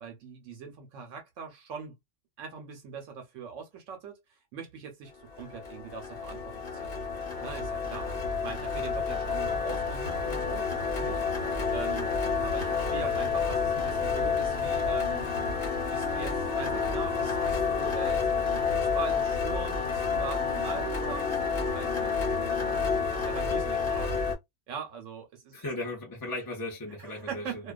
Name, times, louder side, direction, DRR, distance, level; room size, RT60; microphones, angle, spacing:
voice 1, 0.0-2.0 2.4-7.0 7.4-8.1 8.4-11.2 11.7-12.1 12.4-15.3 15.9-22.1 22.8-22.9 23.2-24.2 24.7-25.7 27.0-27.7, right 6 dB, 80° right, 1.0 m, -41 dB
sound 1, 5.3-24.4, left 5 dB, 55° left, 0.9 m, -29 dB
Wind instrument woodwind instrument, 15.0-23.1, left 8 dB, 85° left, 1.0 m, -43 dB
voice 2, 25.5-27.6, left 2 dB, 30° left, 0.4 m, -36 dB
2.4 x 2.3 x 2.3 m
omnidirectional pair, 1.3 m